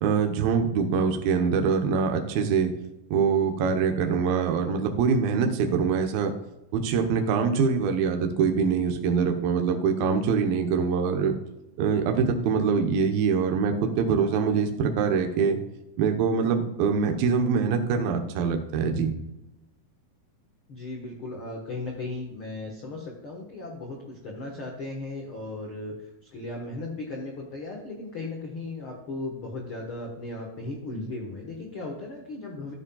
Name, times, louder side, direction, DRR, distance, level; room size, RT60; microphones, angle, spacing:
voice 1, 0.0-2.7 3.1-6.3 6.7-11.4 11.8-15.6 16.0-19.1, right 6 dB, 75° right, 4 dB, 2.7 m, -24 dB
voice 2, 20.7-25.9 26.3-32.7, left 2 dB, 65° left, -1 dB, 1.3 m, -36 dB
14.0 x 7.3 x 2.3 m, 0.93 s
omnidirectional pair, 4.6 m